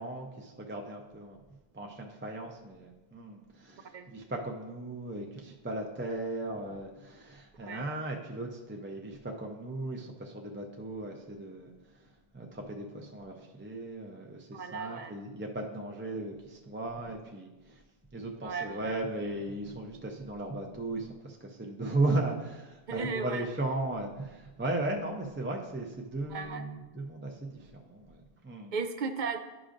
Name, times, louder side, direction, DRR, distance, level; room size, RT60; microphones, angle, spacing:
voice 1, 0.0-1.4 1.7-12.1 12.3-17.8 18.1-28.8, right 2 dB, 15° right, 1 dB, 0.4 m, -36 dB
voice 2, 14.5-15.2 18.4-18.9 22.9-23.5 26.3-26.6 28.7-29.4, right 5 dB, 60° right, 8 dB, 0.6 m, -35 dB
11.5 x 5.0 x 2.5 m, 1.1 s
omnidirectional pair, 1.1 m